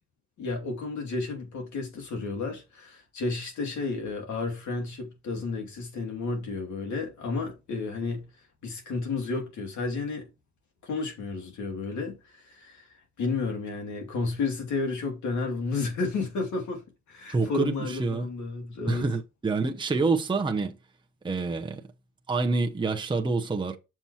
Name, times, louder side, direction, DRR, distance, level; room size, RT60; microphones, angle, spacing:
voice 1, 0.4-8.3 8.6-10.3 10.8-12.9 13.2-16.8 17.1-19.1, left 3 dB, 70° left, 2.7 m, -32 dB
voice 2, 17.3-18.3 18.9-20.8 21.2-21.8 22.3-23.8, right 3 dB, 15° right, 0.9 m, -27 dB
7.0 x 6.0 x 2.9 m
cardioid pair, 90°, 30 cm